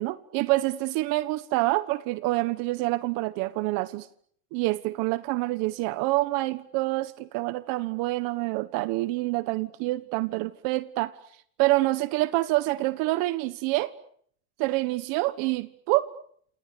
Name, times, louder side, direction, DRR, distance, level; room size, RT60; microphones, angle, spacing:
voice 1, 0.0-4.1 4.5-11.1 11.6-13.9 14.6-16.1, right 19 dB, 55° right, 13 dB, 1.4 m, -27 dB
28.5 x 28.0 x 6.9 m, 0.66 s
supercardioid pair, 145°, 41 cm